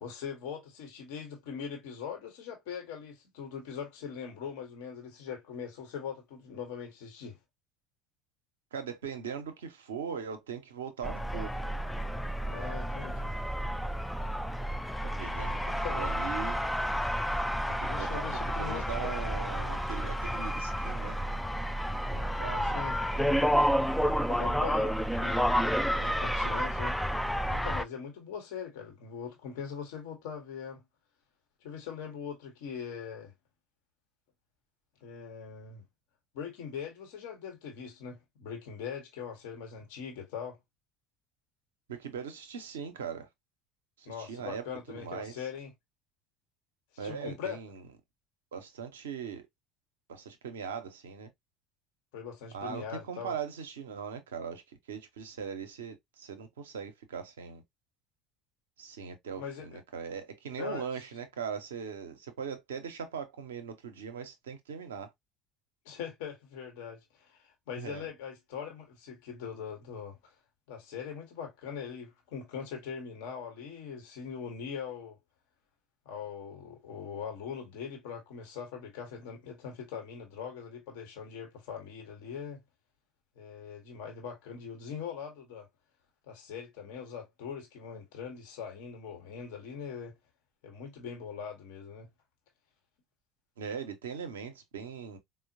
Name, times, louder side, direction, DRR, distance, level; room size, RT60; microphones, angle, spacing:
voice 1, 0.0-7.4 12.5-13.3 15.8-16.0 17.9-19.1 22.6-23.0 24.3-27.0 27.5-30.8 31.6-33.3 35.0-35.8 36.3-40.6 44.1-45.7 46.9-47.6 52.1-53.3 59.3-59.8 60.6-60.8 65.8-70.3 70.7-75.2 76.1-82.6 83.4-85.7 86.3-90.2 90.6-92.1, left 7 dB, 65° left, 0.8 m, -41 dB
voice 2, 8.7-11.5 15.2-16.6 17.7-18.3 18.6-21.2 22.1-22.7 41.9-43.3 44.0-45.4 47.0-47.8 48.5-49.4 50.1-51.3 52.5-54.6 54.9-57.6 58.8-65.1 67.8-68.1 93.6-95.2, right 7 dB, 75° right, 0.6 m, -40 dB
sound 1, 11.0-27.8, equal, 5° left, 0.3 m, -30 dB
4.2 x 2.0 x 2.5 m
figure-of-eight pair, 60°, 0 cm